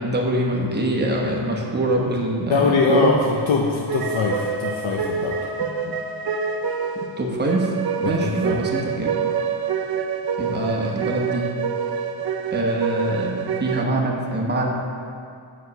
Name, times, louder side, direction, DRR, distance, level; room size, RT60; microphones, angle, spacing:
voice 1, 0.0-3.1 5.6-5.9 7.2-7.7 8.0-9.1 10.4-11.4 12.5-14.7, right 1 dB, 20° right, -1 dB, 0.9 m, -24 dB
voice 2, 2.5-5.4 8.0-8.6, left 4 dB, 65° left, -1 dB, 0.8 m, -22 dB
sound 1, 3.9-13.8, right 6 dB, 50° right, 0.5 m, -27 dB
8.0 x 5.1 x 5.3 m, 2.3 s
wide cardioid pair, 165°, 49 cm